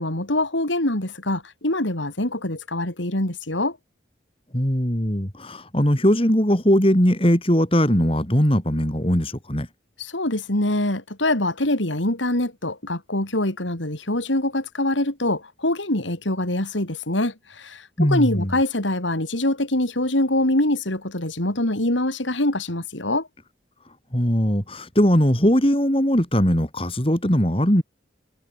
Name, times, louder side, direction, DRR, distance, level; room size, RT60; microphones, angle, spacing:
voice 1, 0.0-3.8 10.0-23.3, left 1 dB, 90° left, 4.7 m, -24 dB
voice 2, 4.5-9.7 18.0-18.5 24.1-27.8, equal, 30° left, 4.3 m, -20 dB
head